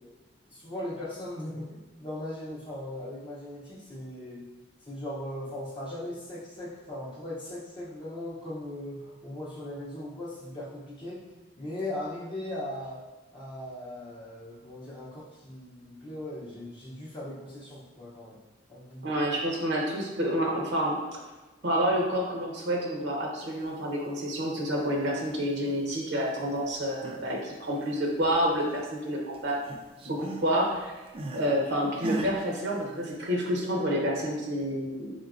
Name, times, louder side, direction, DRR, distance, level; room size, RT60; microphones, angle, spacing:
voice 1, 0.0-4.5 4.8-11.2 11.6-13.0 13.3-18.4 18.7-19.2, left 1 dB, 25° left, -8 dB, 0.6 m, -39 dB
voice 2, 19.0-21.0 21.6-29.6 30.0-30.9 31.3-35.1, equal, 65° right, -1 dB, 0.7 m, -28 dB
sound 1, 26.7-27.3 27.6-29.1 29.3-31.5 32.0-32.4, right 2 dB, 30° right, 0.4 m, -38 dB
3.8 x 3.7 x 2.4 m, 1.2 s
head